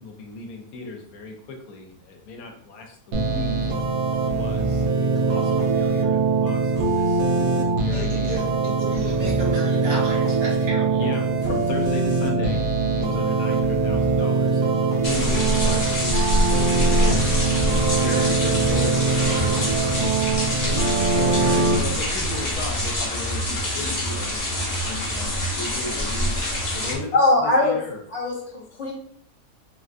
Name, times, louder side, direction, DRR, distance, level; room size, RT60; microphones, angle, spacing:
voice 1, 0.0-3.7 4.1-7.5 7.8-8.4 11.0-12.7 12.9-14.6 15.0-17.2 17.9-20.2 20.6-24.4 24.8-28.0, left 3 dB, 80° left, 3 dB, 1.0 m, -35 dB
sound 1, 3.1-21.8, right 3 dB, 80° right, 0.4 m, -22 dB
voice 2, 7.9-11.0, right 1 dB, 65° right, -4 dB, 1.3 m, -33 dB
sound 2, 15.0-27.0, equal, 40° left, 0.6 m, -25 dB
voice 3, 27.1-27.8 28.1-28.9, left 2 dB, 55° left, -3 dB, 1.2 m, -21 dB
3.3 x 2.4 x 2.4 m, 0.65 s
omnidirectional pair, 1.5 m